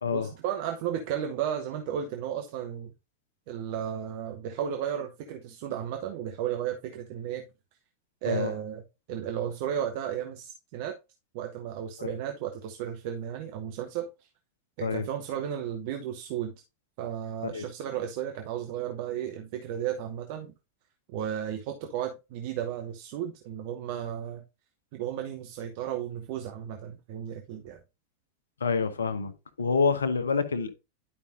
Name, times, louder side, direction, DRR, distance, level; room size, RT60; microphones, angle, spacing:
voice 1, 0.1-2.9 3.5-7.4 8.2-8.8 9.1-11.0 11.3-14.1 14.8-16.5 17.0-20.5 21.1-24.4 24.9-27.8, right 9 dB, 45° right, 0.9 m, -34 dB
voice 2, 28.6-29.3 29.6-30.7, left 5 dB, 70° left, 0.9 m, -27 dB
11.0 x 5.2 x 2.6 m
figure-of-eight pair, 90°, 0 cm